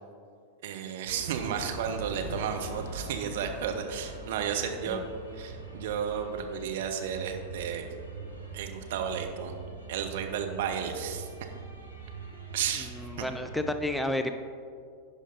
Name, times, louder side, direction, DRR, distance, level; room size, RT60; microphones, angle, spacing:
voice 1, 0.6-5.0 5.4-7.9 8.5-9.6 9.9-11.3 12.5-12.9 13.2-13.3, right 7 dB, 55° right, 4 dB, 0.8 m, -33 dB
sound 1, 1.1-13.7, right 3 dB, 90° right, 1.1 m, -42 dB
voice 2, 12.8-14.4, left 1 dB, 5° left, 8 dB, 0.3 m, -31 dB
11.0 x 5.0 x 4.0 m, 2.3 s
figure-of-eight pair, 90°, 0 cm